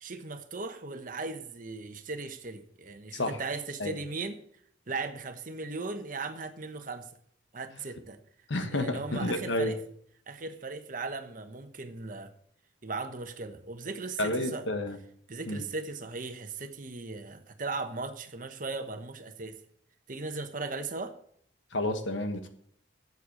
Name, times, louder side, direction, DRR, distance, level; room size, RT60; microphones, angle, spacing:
voice 1, 0.0-4.4 4.9-7.1 7.5-8.2 8.7-9.8 10.3-12.3 12.8-14.6 15.3-19.6 20.1-21.1, right 3 dB, 45° right, 8 dB, 1.1 m, -37 dB
voice 2, 8.5-9.7 14.2-15.0 15.5-15.6 21.7-22.5, left 1 dB, 85° left, 7 dB, 1.4 m, -30 dB
8.1 x 7.7 x 8.4 m, 0.65 s
head